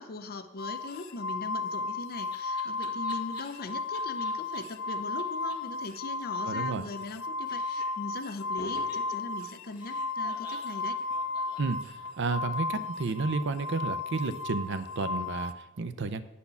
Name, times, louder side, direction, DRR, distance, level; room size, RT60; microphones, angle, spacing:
voice 1, 0.0-11.0, left 3 dB, 50° left, 9 dB, 0.7 m, -40 dB
sound 1, 0.6-15.5, left 3 dB, 85° left, 0.5 m, -34 dB
Laughter, 1.5-4.6 4.9-5.0 5.2-5.3 5.5-5.6 5.8-7.2 7.4-8.1 8.6-12.3, left 3 dB, 25° left, 1.5 m, -50 dB
voice 2, 6.4-6.8 11.6-11.8 12.2-16.2, right 3 dB, 60° right, 12 dB, 0.6 m, -31 dB
9.9 x 4.2 x 6.9 m, 0.98 s
head